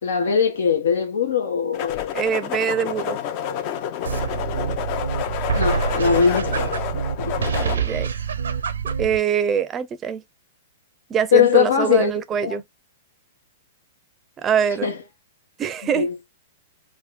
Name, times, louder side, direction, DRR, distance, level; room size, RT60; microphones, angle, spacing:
voice 1, 0.0-2.1 5.5-6.7 7.3-7.4 11.3-12.1 12.4-12.6 14.8-15.0 15.9-16.1, left 7 dB, 75° left, 1.1 m, -20 dB
sound 1, 1.7-7.8, left 9 dB, 45° left, 0.7 m, -28 dB
voice 2, 2.1-3.2 7.6-8.1 9.0-10.2 11.1-12.6 14.4-14.9 15.6-16.1, right 8 dB, 25° right, 0.5 m, -23 dB
sound 2, 4.0-9.2, right 6 dB, 85° right, 0.7 m, -26 dB
3.6 x 2.6 x 3.3 m
hypercardioid pair, 125°, 0 cm